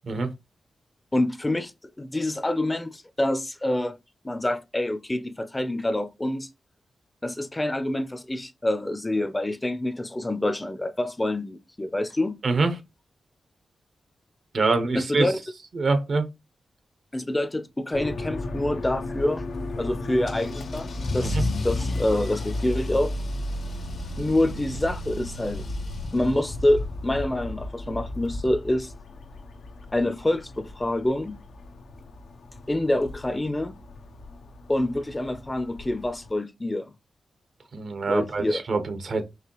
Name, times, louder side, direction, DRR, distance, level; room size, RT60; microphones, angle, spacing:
voice 1, 1.1-1.7 2.0-4.0 4.2-6.5 7.2-12.4 14.9-15.4 17.1-19.4 19.8-23.1 24.2-25.7 26.1-28.9 29.9-31.4 32.7-33.7 34.7-36.9 38.0-38.6, left 1 dB, 20° left, 0.6 m, -26 dB
voice 2, 14.5-15.3 15.7-16.3 21.2-21.4 37.7-39.3, right 3 dB, 65° right, 0.9 m, -25 dB
sound 1, 17.9-36.3, left 2 dB, 85° left, 0.7 m, -37 dB
Car / Engine starting / Accelerating revving vroom, 20.3-26.8, left 1 dB, 65° left, 1.0 m, -32 dB
4.8 x 2.9 x 3.0 m
cardioid pair, 45°, 0 cm